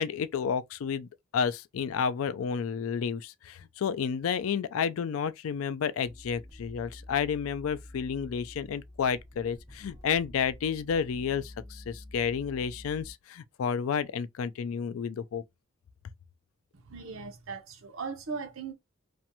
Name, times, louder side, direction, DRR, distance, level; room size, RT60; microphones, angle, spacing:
voice 1, 0.0-15.4, left 7 dB, 85° left, 0.4 m, -31 dB
sound 1, 6.0-13.1, left 1 dB, 15° right, 0.9 m, -48 dB
voice 2, 16.8-18.7, right 5 dB, 75° right, 0.7 m, -38 dB
2.5 x 2.2 x 2.7 m
head